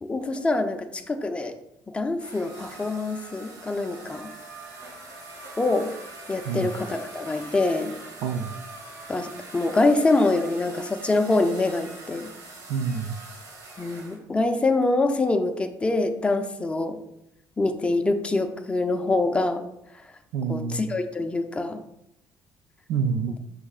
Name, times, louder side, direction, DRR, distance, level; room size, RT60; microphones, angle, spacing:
voice 1, 0.0-1.6 1.9-4.3 5.6-5.9 6.3-7.9 9.1-12.3 13.8-17.0 17.6-19.6 20.5-21.8, left 2 dB, 15° left, 6 dB, 0.6 m, -25 dB
sound 1, 2.2-14.2, right 2 dB, 55° right, 2.6 m, -43 dB
voice 2, 8.2-8.6 12.7-13.2 20.3-20.9 22.9-23.4, right 6 dB, 80° right, 8 dB, 0.6 m, -27 dB
8.6 x 6.3 x 2.4 m, 0.82 s
cardioid pair, 135°, 7 cm